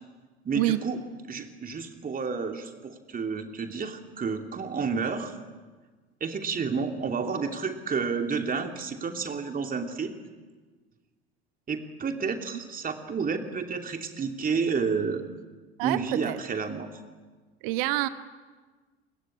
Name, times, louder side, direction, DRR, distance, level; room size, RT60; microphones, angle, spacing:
voice 1, 0.4-1.0 1.3-5.3 6.2-10.1 11.7-15.3 15.8-16.9, right 5 dB, 25° right, 5 dB, 2.9 m, -30 dB
voice 2, 15.8-16.4 17.6-18.1, right 16 dB, 55° right, 12 dB, 1.3 m, -27 dB
29.5 x 21.5 x 8.8 m, 1.4 s
figure-of-eight pair, 65°, 32 cm